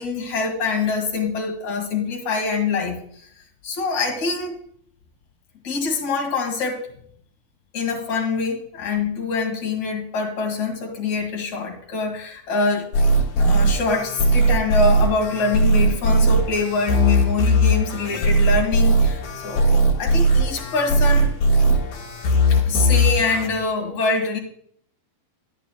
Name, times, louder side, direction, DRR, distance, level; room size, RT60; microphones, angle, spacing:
voice 1, 0.0-3.0 3.6-4.6 5.6-6.9 7.7-12.9 13.4-21.3 21.6-21.8 22.5-24.4, left 4 dB, 55° left, 1 dB, 2.9 m, -25 dB
sound 1, 12.9-23.5, right 1 dB, 70° left, 3.3 m, -18 dB
11.5 x 9.9 x 2.2 m, 0.63 s
omnidirectional pair, 4.4 m